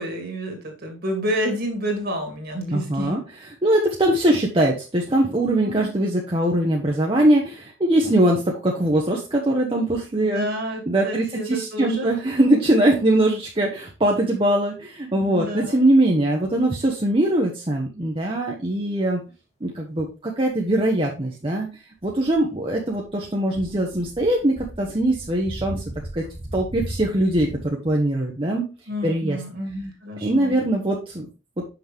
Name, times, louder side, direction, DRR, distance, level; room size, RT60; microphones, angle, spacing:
voice 1, 0.0-3.2 5.6-5.9 10.2-12.2 15.2-15.8 28.9-30.6, equal, 50° right, 2 dB, 2.2 m, -29 dB
voice 2, 2.7-3.2 3.6-10.5 10.9-19.2 19.6-21.7 22.0-25.8 26.1-26.2 26.5-28.6 29.0-29.4 30.2-31.3, right 1 dB, 25° right, -1 dB, 1.0 m, -21 dB
sound 1, 22.0-23.1 23.5-27.6, right 1 dB, 35° left, 2.2 m, -37 dB
6.0 x 6.0 x 3.5 m, 0.31 s
head